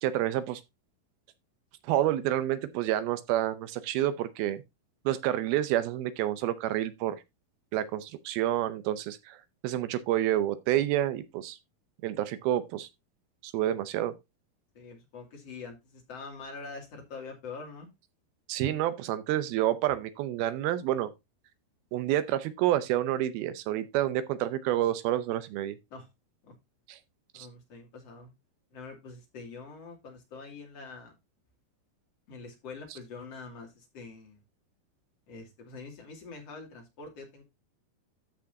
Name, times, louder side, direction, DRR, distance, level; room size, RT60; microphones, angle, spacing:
voice 1, 0.0-0.6 1.8-4.6 5.1-7.2 7.7-9.4 9.6-11.6 12.0-12.9 13.4-14.1 18.5-21.1 21.9-25.8 26.9-27.0 27.3-27.5, right 13 dB, 80° right, 2.5 m, -29 dB
voice 2, 14.7-17.9 25.9-26.1 26.4-26.5 27.3-28.3 28.7-31.2 32.3-34.4 35.3-37.4, left 4 dB, 45° left, 3.2 m, -45 dB
13.5 x 6.0 x 2.7 m
omnidirectional pair, 4.6 m